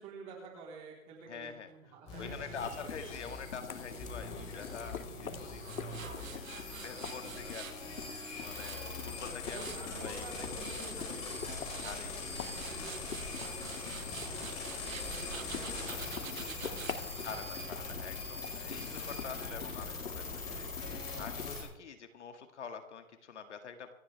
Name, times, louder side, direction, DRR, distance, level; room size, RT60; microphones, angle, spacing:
voice 1, 0.0-3.1 3.9-4.3 6.7-7.5 9.5-14.5 14.9-17.5 19.3-19.7, right 4 dB, 15° right, -2 dB, 3.7 m, -51 dB
voice 2, 1.3-1.7 2.2-6.5 6.8-9.7 10.0-10.5 11.8-12.5 17.2-23.9, left 6 dB, 60° left, 7 dB, 1.9 m, -46 dB
sound 1, 2.1-21.6, left 3 dB, 15° left, 4.4 m, -42 dB
sound 2, 2.5-21.5, left 6 dB, 85° left, 1.9 m, -46 dB
Tools, 5.6-7.8 8.3-9.9 10.4-10.9 11.5-12.0 12.4-17.0, right 8 dB, 75° right, 1.7 m, -47 dB
27.0 x 9.9 x 3.4 m, 0.85 s
hypercardioid pair, 170°, 40 cm